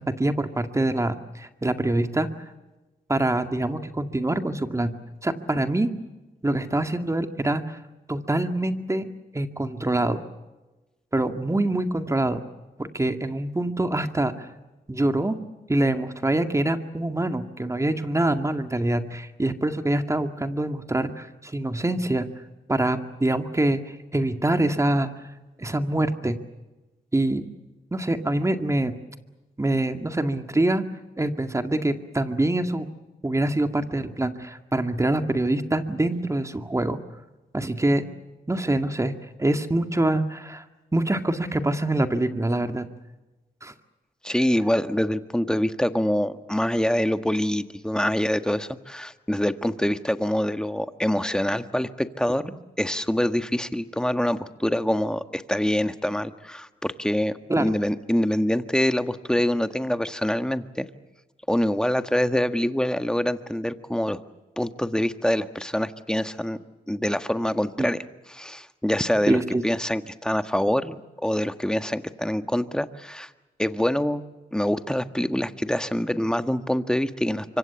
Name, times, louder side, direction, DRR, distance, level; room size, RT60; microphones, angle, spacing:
voice 1, 0.0-2.3 3.1-4.9 5.2-5.9 6.4-7.8 8.1-9.1 9.3-10.2 11.1-12.4 12.8-14.5 14.9-15.4 15.7-22.3 22.7-25.1 25.6-26.4 27.1-27.4 27.9-29.0 29.6-30.8 31.2-32.9 33.2-37.0 37.5-38.0 38.5-39.1 39.4-40.6 40.9-42.9 43.6-43.7 57.5-57.7 67.8-67.9 69.3-69.6, right 1 dB, 15° right, 7 dB, 2.1 m, -25 dB
voice 2, 44.2-52.4 52.8-60.9 61.5-64.2 64.6-66.6 66.9-68.0 68.3-71.0 71.2-73.3 73.6-74.2 74.5-77.6, left 1 dB, 5° left, 10 dB, 1.5 m, -25 dB
25.5 x 25.0 x 7.1 m, 1.1 s
cardioid pair, 75°, 17 cm